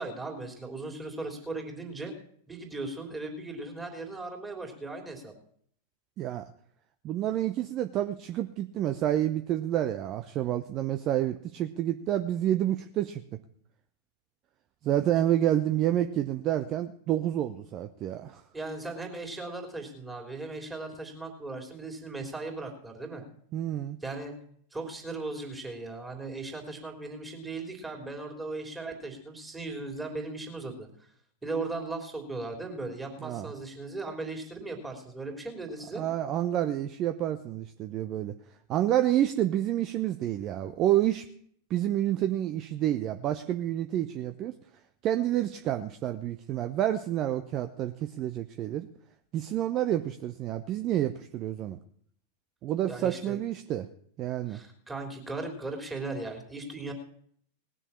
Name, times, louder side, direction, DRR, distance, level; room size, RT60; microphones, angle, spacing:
voice 1, 0.0-2.1 2.5-5.3 18.5-23.3 24.0-24.3 24.7-30.9 31.4-36.0 52.9-53.4 54.5-56.9, right 3 dB, 10° right, 2 dB, 3.4 m, -37 dB
voice 2, 7.0-13.4 14.8-18.4 23.5-24.0 33.2-33.5 36.0-38.3 38.7-41.2 41.7-44.5 45.0-48.9 49.3-51.8 52.6-53.9 54.2-54.6, right 12 dB, 35° right, 8 dB, 0.7 m, -29 dB
19.0 x 6.9 x 7.3 m, 0.63 s
figure-of-eight pair, 90°, 0 cm